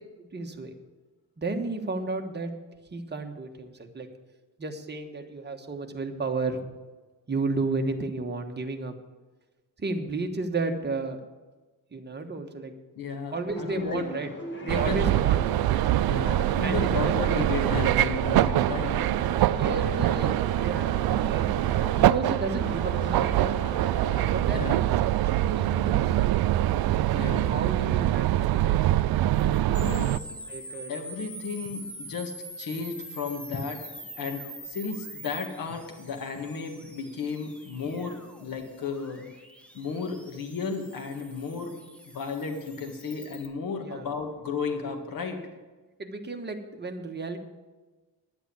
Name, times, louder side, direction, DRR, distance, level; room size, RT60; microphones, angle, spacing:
voice 1, 0.2-0.7 1.4-2.5 2.9-4.1 4.6-6.6 7.3-8.9 9.8-11.2 11.9-12.7 13.3-14.3 14.6-15.4 16.6-17.4 18.8-19.0 19.4-21.5 21.9-23.6 24.3-26.1 27.3-28.8 29.4-30.2 30.5-30.9 43.8-44.1 46.0-47.4, right 3 dB, 30° right, 4 dB, 1.3 m, -33 dB
voice 2, 12.9-14.0 14.7-15.1 16.1-18.9 24.4-24.8 27.1-27.5 29.7-30.1 30.9-33.8 34.2-39.2 39.7-41.7 42.0-45.4, left 5 dB, 65° left, 4 dB, 1.8 m, -33 dB
sound 1, 13.5-24.4, left 1 dB, 30° left, 1.9 m, -39 dB
sound 2, 14.7-30.2, right 14 dB, 80° right, 0.5 m, -24 dB
sound 3, 29.7-43.5, right 1 dB, 5° left, 1.4 m, -44 dB
10.5 x 8.1 x 8.5 m, 1.2 s
wide cardioid pair, 125°, 36 cm